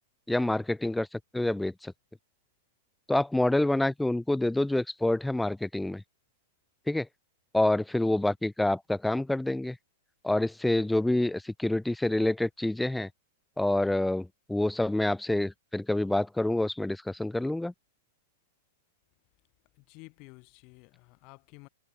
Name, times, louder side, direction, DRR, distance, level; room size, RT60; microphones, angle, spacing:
voice 1, 0.3-1.9 3.1-6.0 6.9-7.1 7.5-9.8 10.2-13.1 13.6-17.7, left 1 dB, 5° left, 1.1 m, -27 dB
voice 2, 19.8-21.7, left 29 dB, 40° left, 7.6 m, -52 dB
figure-of-eight pair, 100°, 0 cm